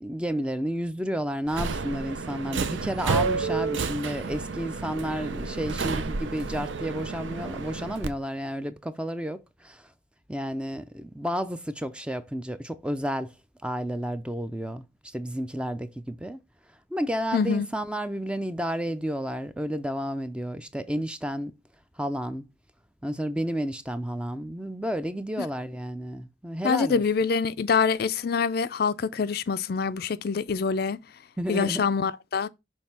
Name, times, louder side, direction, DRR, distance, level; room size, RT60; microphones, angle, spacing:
voice 1, 0.0-9.9 10.3-13.3 13.6-16.4 16.9-21.6 22.0-22.5 23.0-27.0 31.4-31.9, equal, 5° right, 0.4 m, -31 dB
Subway metro underground, 1.5-8.1, right 4 dB, 80° right, 0.7 m, -30 dB
voice 2, 17.3-17.7 26.6-31.0 31.5-32.5, left 5 dB, 55° left, 0.4 m, -25 dB
6.4 x 3.2 x 5.7 m
head